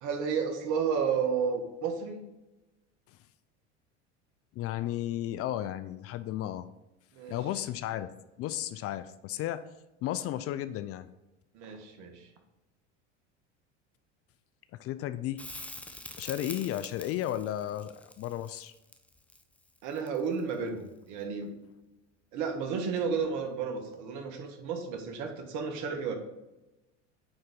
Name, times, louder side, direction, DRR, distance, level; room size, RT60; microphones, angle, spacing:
voice 1, 0.0-2.2 7.1-7.4 11.5-12.3 19.8-21.5 22.3-26.1, right 6 dB, 55° right, 5 dB, 1.5 m, -32 dB
voice 2, 4.5-6.7 7.3-8.1 8.4-9.7 10.0-11.1 14.7-15.4 16.2-18.7, left 12 dB, 40° left, 13 dB, 0.4 m, -34 dB
Crackle, 15.4-20.5 23.2-23.3, left 1 dB, 5° left, 0.6 m, -45 dB
8.9 x 4.0 x 3.8 m, 1.0 s
hypercardioid pair, 85°, 35 cm